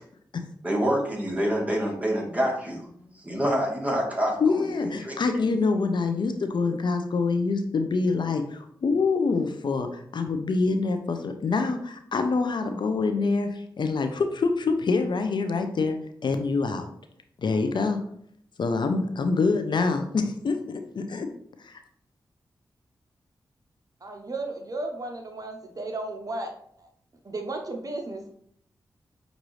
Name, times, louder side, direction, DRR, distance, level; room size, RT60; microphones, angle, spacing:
voice 1, 0.6-5.2, equal, 15° right, -1 dB, 1.7 m, -27 dB
voice 2, 4.4-16.9 17.4-18.0 18.6-21.3 21.6-21.8, left 4 dB, 65° left, 7 dB, 0.5 m, -26 dB
voice 3, 24.0-26.5 26.8-26.9 27.2-28.2, right 2 dB, 45° right, 3 dB, 0.7 m, -34 dB
6.1 x 2.6 x 3.1 m, 0.66 s
cardioid pair, 45°, 8 cm